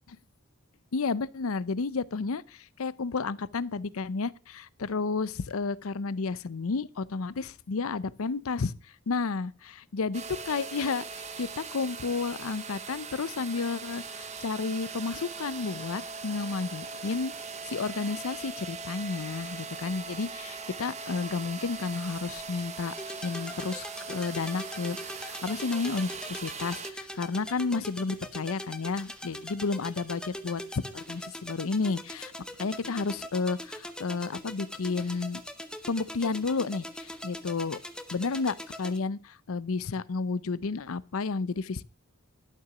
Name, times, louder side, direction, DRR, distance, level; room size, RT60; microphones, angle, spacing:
voice 1, 0.9-8.7 9.1-22.9 23.2-32.3 32.6-35.4 35.9-37.8 38.1-41.8, left 4 dB, 75° left, 0.6 m, -32 dB
sound 1, 10.1-26.9, right 4 dB, 30° right, 1.1 m, -40 dB
sound 2, 23.0-39.0, left 1 dB, 5° left, 0.9 m, -42 dB
12.0 x 6.8 x 5.9 m
head